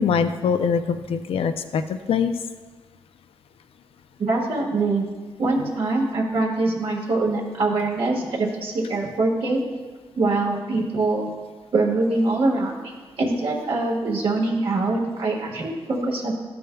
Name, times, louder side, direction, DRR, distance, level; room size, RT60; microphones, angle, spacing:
voice 1, 0.0-2.4, left 6 dB, 85° left, 9 dB, 0.5 m, -23 dB
voice 2, 4.2-5.1 5.4-9.6 10.1-11.3 11.7-12.9 13.2-16.3, right 2 dB, 70° right, -2 dB, 1.6 m, -23 dB
13.0 x 6.8 x 2.3 m, 1.4 s
cardioid pair, 75°, 10 cm